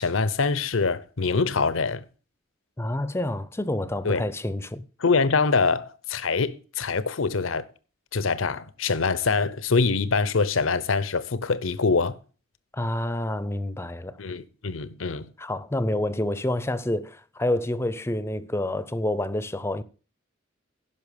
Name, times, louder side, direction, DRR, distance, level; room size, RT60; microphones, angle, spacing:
voice 1, 0.0-2.0 4.0-4.2 5.0-7.7 8.1-12.2 14.2-15.3, left 4 dB, 90° left, 0.8 m, -24 dB
voice 2, 2.8-4.9 12.7-14.2 15.4-19.8, left 1 dB, 15° left, 0.5 m, -28 dB
11.0 x 5.8 x 6.7 m
head